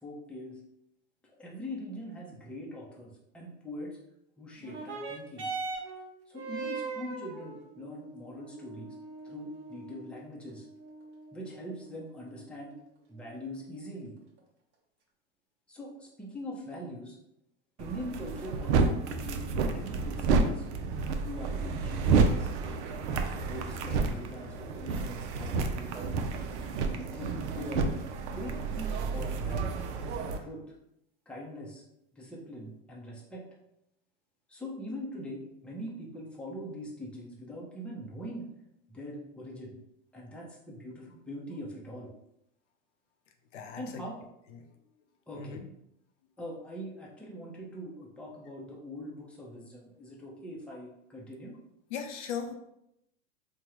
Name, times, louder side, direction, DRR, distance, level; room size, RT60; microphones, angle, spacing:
voice 1, 0.0-0.6 1.4-4.0 4.4-5.5 6.3-9.0 9.2-10.6 11.3-12.8 13.1-14.2 15.7-17.2 17.8-20.6 21.2-22.5 23.4-26.1 26.7-27.9 28.3-29.8 30.4-30.6 31.3-31.8 32.1-33.4 34.5-38.5 38.9-39.8 40.1-42.1 43.8-44.2 45.3-45.6 46.4-51.5, equal, 5° left, -3 dB, 0.7 m, -42 dB
sound 1, 4.6-13.6 14.4-14.5, right 4 dB, 30° right, 1.0 m, -42 dB
sound 2, 17.8-30.4, right 4 dB, 75° right, 0.5 m, -30 dB
voice 2, 43.5-44.0 44.5-44.7 45.3-45.7 51.9-52.5, left 7 dB, 80° left, 4 dB, 0.6 m, -38 dB
3.5 x 2.2 x 3.0 m, 0.80 s
hypercardioid pair, 110°, 35 cm